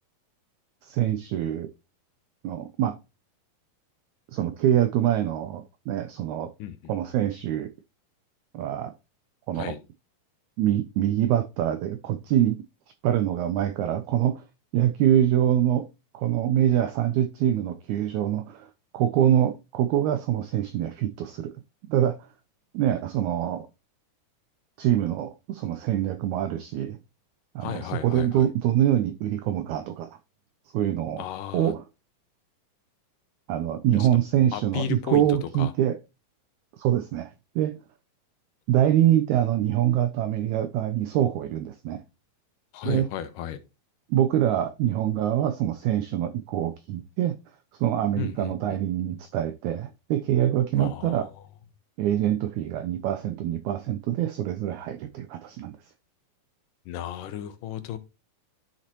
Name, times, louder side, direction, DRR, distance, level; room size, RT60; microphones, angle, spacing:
voice 1, 0.8-1.7 2.4-3.0 4.3-6.5 6.9-7.7 8.5-8.9 9.5-9.7 10.6-12.6 13.0-14.4 14.7-15.9 16.1-18.7 18.9-21.5 21.9-22.2 22.7-23.7 24.8-27.0 27.5-30.1 30.7-31.2 31.5-31.8 33.5-36.0 36.8-37.3 37.5-37.8 38.7-42.0 42.8-43.1 44.1-47.4 47.8-51.3 52.0-55.8, right 11 dB, 90° right, 1.7 m, -24 dB
voice 2, 6.6-6.9 9.6-9.8 27.6-28.5 31.2-31.7 33.9-34.1 34.5-35.7 42.7-43.6 48.2-48.8 50.8-51.3 56.9-58.0, left 9 dB, 80° left, 2.3 m, -34 dB
11.5 x 4.1 x 2.9 m
omnidirectional pair, 4.0 m